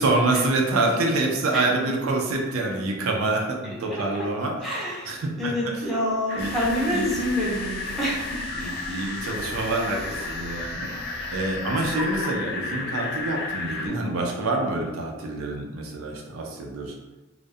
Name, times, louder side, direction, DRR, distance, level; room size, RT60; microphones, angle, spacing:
voice 1, 0.0-4.5 5.1-5.5 6.4-6.5 6.9-7.1 8.5-17.0, right 2 dB, 75° right, 0 dB, 0.4 m, -26 dB
voice 2, 3.9-4.2 4.6-8.4 13.8-14.1, equal, ahead, -8 dB, 0.7 m, -27 dB
sound 1, 6.3-13.9, left 3 dB, 55° left, 0.3 m, -33 dB
sound 2, 6.4-12.2, left 1 dB, 70° left, 0.8 m, -40 dB
2.3 x 2.1 x 2.6 m, 1.1 s
head